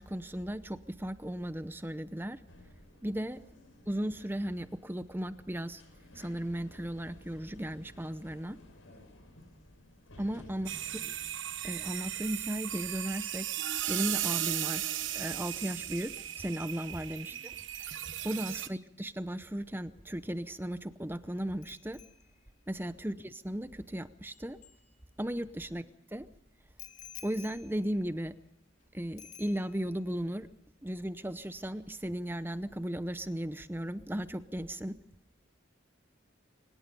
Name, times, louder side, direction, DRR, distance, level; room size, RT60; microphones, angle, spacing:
voice 1, 0.0-2.4 3.0-3.4 3.9-5.8 6.1-8.6 10.2-10.8 11.6-13.5 13.9-14.9 15.1-17.3 18.2-22.0 22.7-24.6 25.2-25.8 26.1-26.3 27.2-28.3 28.9-30.5 30.8-35.0, equal, 10° right, 13 dB, 0.7 m, -36 dB
sound 1, 2.5-12.2, left 1 dB, 85° left, 5.7 m, -56 dB
voice 2, 3.4-3.7 8.8-9.1 10.5-11.1 17.3-17.5 18.5-18.8 23.0-23.3 25.7-25.9, left 3 dB, 55° left, 4 dB, 7.9 m, -61 dB
sound 2, 10.7-18.7, right 12 dB, 70° right, 1.1 m, -36 dB
Bicycle bell, 21.6-25.4 26.8-28.8 29.2-30.0 30.3-30.6, left 9 dB, 35° left, 2.1 m, -54 dB
24.0 x 20.5 x 5.3 m, 0.77 s
head